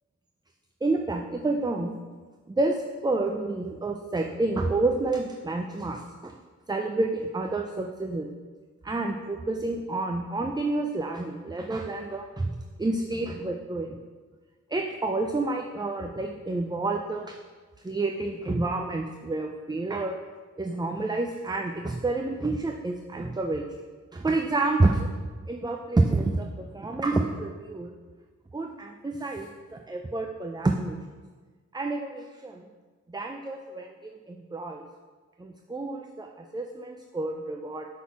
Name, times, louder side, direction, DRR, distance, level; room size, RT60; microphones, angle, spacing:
voice 1, 0.8-2.0 2.5-2.8 3.0-6.3 6.7-8.3 8.8-14.0 14.7-17.4 17.8-20.2 20.6-23.6 24.1-25.1 25.4-27.9 28.5-31.0 31.7-32.6 33.1-34.8 35.4-37.9, right 2 dB, 15° right, 3 dB, 0.4 m, -29 dB
6.2 x 3.7 x 5.8 m, 1.4 s
wide cardioid pair, 80°, 29 cm